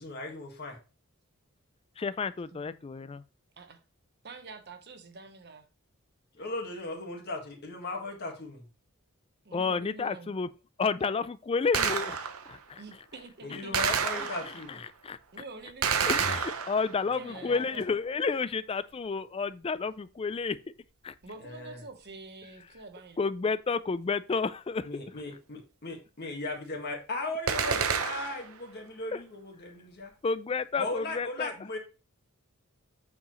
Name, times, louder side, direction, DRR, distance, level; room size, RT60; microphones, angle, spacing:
voice 1, 0.0-0.8 6.3-8.7 13.4-14.8 17.3-17.6 21.4-21.8 24.8-30.1 30.8-31.8, left 2 dB, 50° left, 1.8 m, -37 dB
voice 2, 2.0-3.2 9.5-10.5 10.8-12.8 13.7-13.8 14.2-15.2 16.0-20.6 21.0-21.1 23.2-25.0 29.1-29.2 30.2-31.5, left 4 dB, 25° left, 0.3 m, -31 dB
voice 3, 4.2-5.6 9.4-10.3 12.8-13.7 15.3-16.4 17.2-17.8 21.2-23.2, right 3 dB, 50° right, 1.1 m, -46 dB
Gunshot gunfire, 11.7-12.6 13.7-14.7 15.8-17.1 27.5-28.5, right 6 dB, 85° right, 0.8 m, -29 dB
8.3 x 4.8 x 3.1 m
head